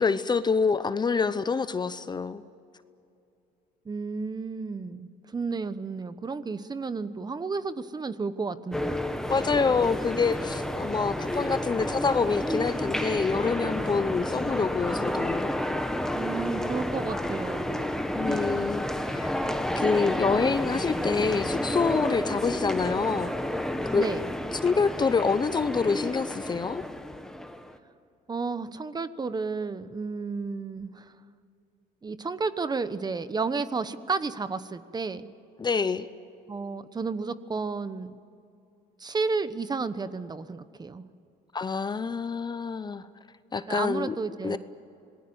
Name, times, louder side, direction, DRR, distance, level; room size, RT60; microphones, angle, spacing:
voice 1, 0.0-2.4 9.3-15.5 18.1-19.3 19.8-23.3 23.9-24.1 24.6-26.8 35.6-36.1 41.5-43.0 43.5-44.2 44.4-44.6, left 5 dB, 25° left, 13 dB, 0.7 m, -26 dB
voice 2, 3.8-9.0 16.1-17.8 24.0-24.3 28.3-31.1 32.0-35.3 36.5-38.2 39.0-41.0 43.7-44.6, right 4 dB, 25° right, 13 dB, 1.0 m, -32 dB
sound 1, 8.7-27.8, left 1 dB, 5° left, 1.3 m, -30 dB
27.0 x 20.0 x 8.0 m, 2.6 s
cardioid pair, 110°, 17 cm